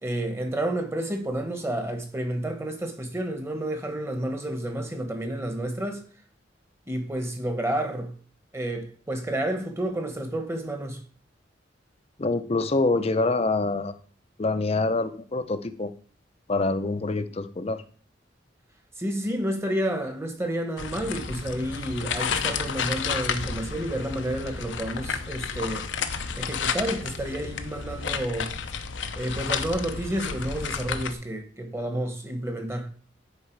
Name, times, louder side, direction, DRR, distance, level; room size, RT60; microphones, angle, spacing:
voice 1, 0.0-6.0 6.9-8.1 8.5-11.0 19.0-25.9 26.4-28.5 29.1-32.9, right 1 dB, 15° right, 1.2 m, -30 dB
voice 2, 12.2-13.9 14.4-15.9 16.5-17.8, left 3 dB, 35° left, 0.6 m, -25 dB
sound 1, 20.8-31.1, left 6 dB, 85° left, 0.7 m, -31 dB
10.0 x 4.4 x 4.6 m
head